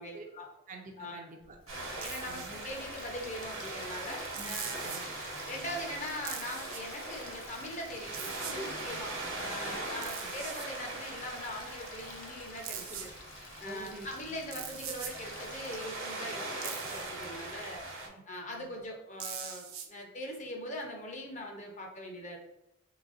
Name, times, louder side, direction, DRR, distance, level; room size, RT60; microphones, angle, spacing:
voice 1, 0.0-0.5 1.0-1.2 1.9-4.9 5.4-13.1 13.6-17.8 18.3-22.4, left 1 dB, 35° left, 1 dB, 0.6 m, -41 dB
voice 2, 0.7-2.0 2.3-2.7 4.3-5.0 9.7-9.8 10.2-10.3 13.6-14.1 18.0-18.1 18.5-18.7, right 2 dB, 40° right, 3 dB, 0.4 m, -49 dB
Water tap faucet, 1.4-15.9, left 6 dB, 80° left, 0.5 m, -53 dB
sound 1, 1.7-18.1, right 2 dB, 65° right, 1.1 m, -41 dB
sound 2, 2.0-2.5 4.3-5.1 6.2-6.8 8.1-8.6 10.0-10.7 12.6-13.1 14.5-15.2 16.6-17.1 19.2-19.9, right 9 dB, 90° right, 0.5 m, -41 dB
3.9 x 3.3 x 2.4 m, 0.93 s
head